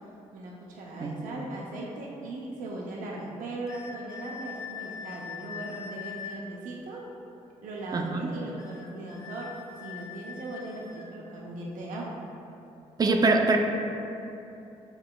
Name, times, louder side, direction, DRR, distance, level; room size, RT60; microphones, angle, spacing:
voice 1, 0.3-7.0 7.6-9.5 9.8-12.3, right 2 dB, 80° right, -3 dB, 0.6 m, -38 dB
sound 1, 3.7-6.4 8.6-11.1, left 7 dB, 25° left, 0.4 m, -42 dB
voice 2, 7.9-8.3 13.0-13.6, right 3 dB, 30° right, 3 dB, 0.4 m, -23 dB
6.7 x 2.8 x 2.2 m, 2.8 s
cardioid pair, 75°, 13 cm